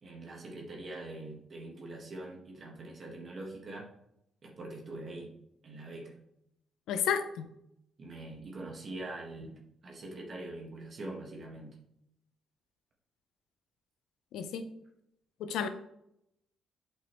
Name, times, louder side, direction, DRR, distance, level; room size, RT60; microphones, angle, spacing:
voice 1, 0.0-3.9 4.4-5.3 5.6-6.2 8.0-11.7, right 2 dB, 45° right, 1.7 m, -43 dB
voice 2, 6.9-7.5 14.3-14.7 15.4-15.7, left 7 dB, 85° left, 0.7 m, -32 dB
8.3 x 5.5 x 3.2 m
cardioid pair, 90°, 0 cm